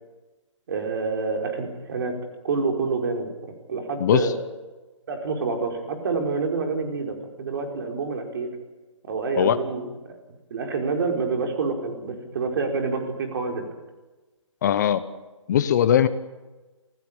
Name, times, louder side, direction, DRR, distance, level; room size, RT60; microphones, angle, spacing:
voice 1, 0.7-2.1 2.4-4.3 5.1-8.5 9.1-10.2 10.5-13.6, right 4 dB, 45° right, 3 dB, 4.9 m, -27 dB
voice 2, 14.6-15.0 15.5-16.1, left 10 dB, 35° left, 13 dB, 1.0 m, -19 dB
26.5 x 16.5 x 9.0 m, 1.2 s
figure-of-eight pair, 150°, 17 cm